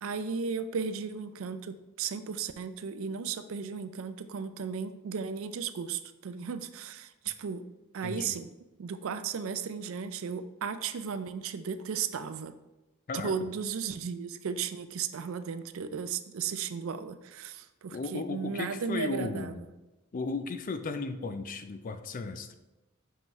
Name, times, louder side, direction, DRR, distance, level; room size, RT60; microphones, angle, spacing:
voice 1, 0.0-7.6 7.9-8.5 8.8-12.5 13.2-19.5, right 6 dB, 70° right, 12 dB, 0.4 m, -35 dB
voice 2, 8.0-8.4 13.1-13.5 17.9-19.6 20.1-22.5, left 3 dB, 40° left, 9 dB, 0.4 m, -35 dB
5.6 x 5.5 x 3.1 m, 1.0 s
head